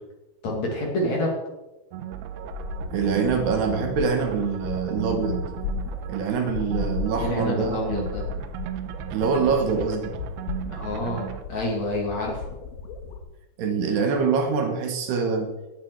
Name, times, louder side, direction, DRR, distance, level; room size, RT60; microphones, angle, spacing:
voice 1, 0.4-1.3 7.2-8.2 10.7-12.4, left 1 dB, 45° left, -1 dB, 3.2 m, -28 dB
sound 1, 1.9-11.4, right 10 dB, 85° right, 3.2 m, -36 dB
sound 2, 2.4-13.2, left 4 dB, 85° left, 3.8 m, -35 dB
voice 2, 2.9-5.5 6.1-8.1 9.1-10.1 13.6-15.5, right 5 dB, 70° right, 5 dB, 3.2 m, -25 dB
18.5 x 9.5 x 4.7 m, 1.0 s
omnidirectional pair, 5.3 m